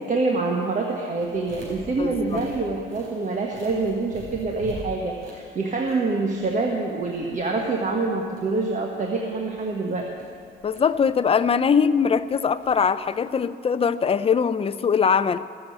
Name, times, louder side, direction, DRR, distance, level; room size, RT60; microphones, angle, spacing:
voice 1, 0.1-10.1, right 3 dB, 40° right, 1 dB, 1.2 m, -26 dB
sound 1, 1.2-13.4, right 1 dB, 85° right, 4.0 m, -45 dB
voice 2, 2.0-2.4 10.6-15.4, left 6 dB, 30° left, 14 dB, 0.4 m, -21 dB
14.5 x 6.9 x 8.0 m, 2.3 s
cardioid pair, 90°, 20 cm